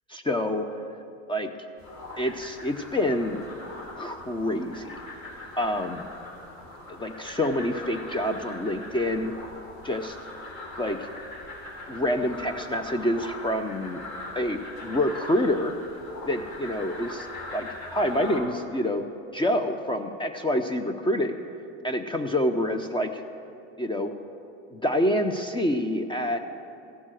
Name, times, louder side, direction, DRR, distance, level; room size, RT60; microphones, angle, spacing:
voice 1, 0.1-0.7 1.3-1.5 2.2-3.4 4.0-4.9 5.6-6.1 6.9-9.3 9.8-10.2 10.8-11.1 11.9-14.0 14.3-15.7 16.3-17.3 17.5-19.0 19.3-21.4 21.8-23.2 23.8-24.1 24.7-26.4, left 1 dB, 15° left, 7 dB, 0.5 m, -27 dB
sound 1, 1.8-18.4, left 2 dB, 55° left, 3.4 m, -41 dB
15.0 x 6.2 x 7.6 m, 2.7 s
hypercardioid pair, 85°, 39 cm